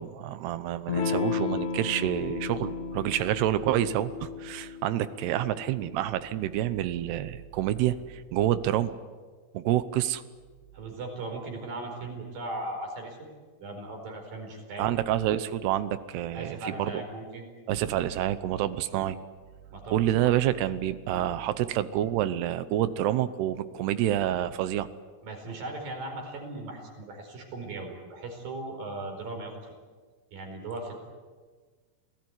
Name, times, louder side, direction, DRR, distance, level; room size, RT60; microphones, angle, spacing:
voice 1, 0.0-8.9 9.5-10.2 14.8-17.0 17.7-19.2 19.9-24.9, right 12 dB, 80° right, 14 dB, 3.0 m, -28 dB
Electric guitar / Strum, 0.9-6.0, left 6 dB, 75° left, 4.1 m, -34 dB
voice 2, 10.7-13.3 13.6-15.0 16.3-17.5 18.9-19.0 19.7-20.4 21.1-21.3 25.2-29.8 30.3-31.0, right 2 dB, 60° right, 3 dB, 6.3 m, -38 dB
27.0 x 18.5 x 9.7 m, 1.5 s
omnidirectional pair, 4.7 m